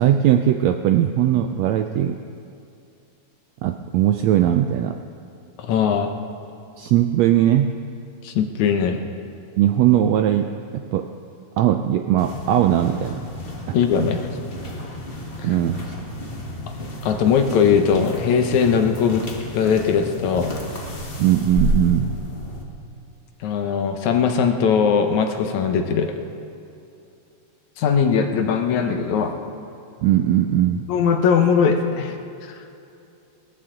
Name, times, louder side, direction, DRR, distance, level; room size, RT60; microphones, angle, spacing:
voice 1, 0.0-2.2 3.6-5.0 6.8-7.8 9.6-11.1 11.6-13.2 13.7-13.8 15.4-15.9 21.2-22.2 30.0-30.9, right 11 dB, 80° right, 7 dB, 1.5 m, -19 dB
voice 2, 5.6-6.1 8.2-9.0 13.7-14.2 15.4-15.5 17.0-19.3 19.5-20.6 23.4-26.1 27.8-29.3 30.9-32.2, left 6 dB, 75° left, 5 dB, 2.2 m, -20 dB
sound 1, 12.2-22.6, equal, 35° left, 0.8 m, -31 dB
20.5 x 13.5 x 3.8 m, 2.6 s
omnidirectional pair, 3.6 m